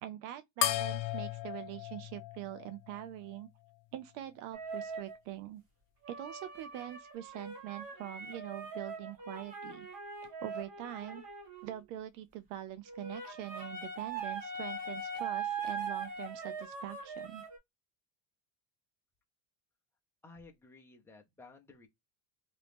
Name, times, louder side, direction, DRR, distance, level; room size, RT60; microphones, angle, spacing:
voice 1, 0.0-3.5 3.9-5.6 6.1-9.9 10.4-11.2 11.6-17.4, right 13 dB, 75° right, 0.6 m, -44 dB
sound 1, 0.6-3.4, left 14 dB, 75° left, 0.6 m, -36 dB
sound 2, 4.5-5.2 6.0-11.7 12.9-17.6, right 4 dB, 45° right, 1.6 m, -41 dB
voice 2, 20.2-21.9, left 3 dB, 5° left, 0.5 m, -55 dB
3.0 x 2.7 x 3.3 m
cardioid pair, 140°, 48 cm